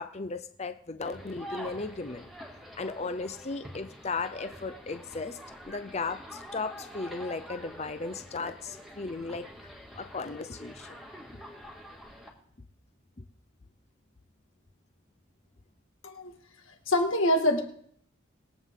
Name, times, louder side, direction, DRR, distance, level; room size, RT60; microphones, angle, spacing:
voice 1, 0.0-2.3 2.8-5.4 5.6-9.5 10.0-11.0, left 4 dB, 30° left, 10 dB, 0.5 m, -36 dB
sound 1, 1.0-12.3, equal, ahead, 2.2 m, -46 dB
voice 2, 16.7-17.6, left 1 dB, 70° left, 4 dB, 1.9 m, -25 dB
21.5 x 8.2 x 3.7 m, 0.63 s
head